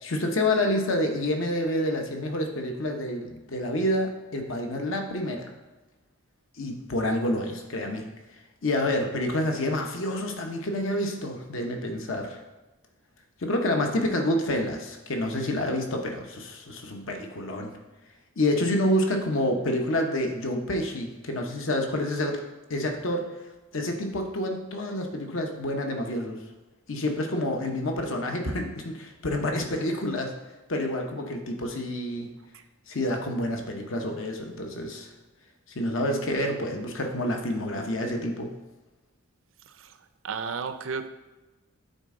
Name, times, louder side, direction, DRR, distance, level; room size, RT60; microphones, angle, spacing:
voice 1, 0.0-5.5 6.6-8.1 8.6-12.4 13.4-17.7 18.4-22.4 22.7-23.3 23.7-26.4 26.9-30.3 30.7-32.3 32.9-35.1 35.7-38.5, left 1 dB, 60° left, 3 dB, 0.9 m, -28 dB
voice 2, 40.2-41.1, right 5 dB, 65° right, 10 dB, 0.5 m, -32 dB
9.1 x 4.2 x 3.7 m, 1.1 s
head